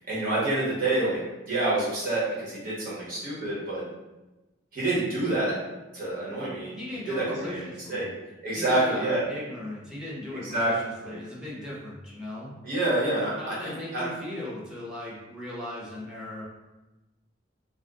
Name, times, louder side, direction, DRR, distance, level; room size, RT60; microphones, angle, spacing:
voice 1, 0.1-1.2 1.4-3.8 4.7-5.6 5.9-6.8 7.1-8.1 8.4-9.2 10.3-10.7 11.0-11.2 12.6-14.0, right 2 dB, 50° right, -8 dB, 1.4 m, -27 dB
voice 2, 6.7-8.1 8.5-12.6 13.4-16.4, left 1 dB, 5° right, -6 dB, 0.8 m, -38 dB
2.6 x 2.5 x 3.6 m, 1.1 s
head